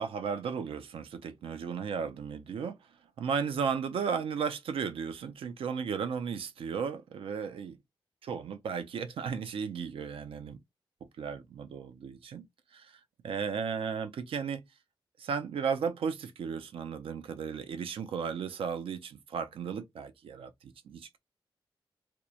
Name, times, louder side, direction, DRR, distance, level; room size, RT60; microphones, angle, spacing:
voice 1, 0.0-2.8 3.2-7.8 8.2-10.6 11.2-12.5 12.7-12.9 13.2-14.6 15.2-21.2, right 6 dB, 90° right, 0.4 m, -35 dB
2.9 x 2.1 x 2.3 m
wide cardioid pair, 145°, 9 cm